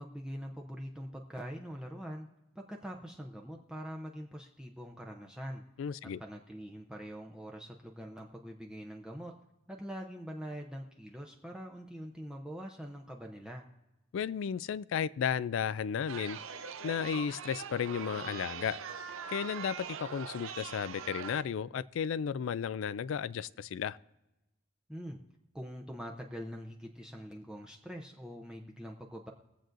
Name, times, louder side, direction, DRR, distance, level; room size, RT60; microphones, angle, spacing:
voice 1, 0.0-2.3 2.5-5.6 6.0-9.3 9.7-13.7 24.9-25.2 25.5-29.3, equal, 5° right, 0.6 m, -44 dB
voice 2, 5.8-6.2 14.1-16.4 16.8-18.8 19.3-24.0, left 7 dB, 70° left, 0.3 m, -34 dB
Chatter, 16.1-21.4, right 6 dB, 85° right, 0.6 m, -42 dB
22.5 x 7.6 x 2.6 m
head